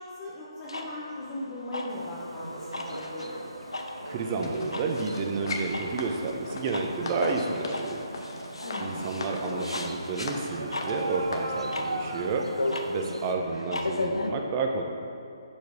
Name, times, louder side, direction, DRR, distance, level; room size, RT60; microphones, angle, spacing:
voice 1, 0.0-3.4 8.6-9.1, left 1 dB, 25° left, -8 dB, 1.0 m, -39 dB
sound 1, 0.6-14.3, left 2 dB, 85° left, 0.6 m, -36 dB
sound 2, 1.9-13.3, right 2 dB, 90° right, 0.5 m, -38 dB
voice 2, 4.1-8.1 8.8-14.8, right 4 dB, 30° right, 3 dB, 0.6 m, -31 dB
sound 3, 4.4-11.6 12.1-12.2, left 3 dB, 55° left, 0.9 m, -39 dB
7.7 x 6.9 x 2.7 m, 2.8 s
figure-of-eight pair, 145°, 3 cm